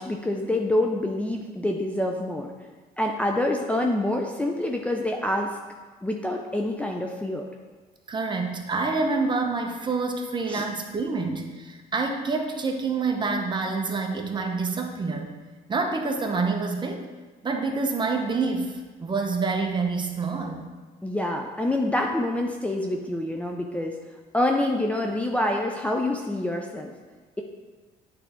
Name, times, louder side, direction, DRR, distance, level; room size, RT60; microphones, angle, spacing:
voice 1, 0.0-2.5 3.0-5.6 6.0-7.5 10.5-10.7 21.0-24.0 24.3-26.9, left 1 dB, 10° left, 1 dB, 0.5 m, -26 dB
voice 2, 8.1-15.3 15.7-17.0 17.4-20.7, right 4 dB, 25° right, 3 dB, 0.8 m, -27 dB
8.7 x 3.4 x 4.3 m, 1.4 s
cardioid pair, 110°, 17 cm